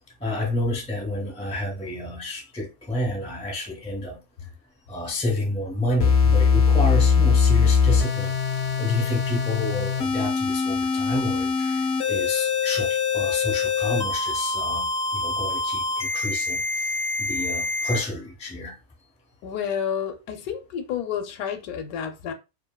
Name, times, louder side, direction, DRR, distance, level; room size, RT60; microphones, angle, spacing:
voice 1, 0.2-4.2 4.9-8.3 8.8-16.9 17.2-18.8, left 1 dB, 5° left, 0.4 m, -30 dB
sound 1, 6.0-18.0, left 5 dB, 65° left, 0.6 m, -23 dB
voice 2, 19.4-22.3, left 8 dB, 80° left, 1.1 m, -30 dB
2.7 x 2.5 x 2.2 m
omnidirectional pair, 1.6 m